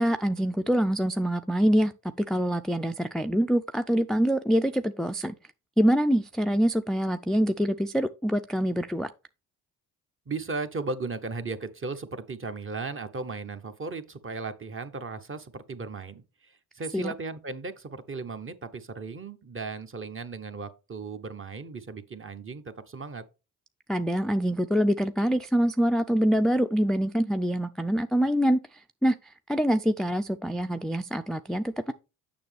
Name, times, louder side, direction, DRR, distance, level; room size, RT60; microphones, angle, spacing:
voice 1, 0.0-1.9 2.2-5.3 5.8-9.1 16.9-17.1 23.9-31.9, equal, ahead, 0.4 m, -25 dB
voice 2, 10.3-23.2, right 4 dB, 35° right, 0.9 m, -36 dB
7.0 x 6.0 x 3.4 m
supercardioid pair, 60°, 38 cm